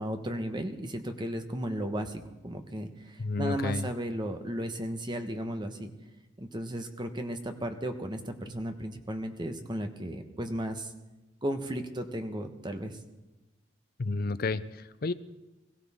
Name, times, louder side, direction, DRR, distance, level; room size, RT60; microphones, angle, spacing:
voice 1, 0.0-5.9 6.4-10.9 11.4-13.0, right 1 dB, 25° right, 6 dB, 1.1 m, -35 dB
voice 2, 3.2-3.9 14.0-15.1, left 3 dB, 50° left, 14 dB, 0.5 m, -31 dB
21.5 x 15.5 x 3.6 m, 1.0 s
head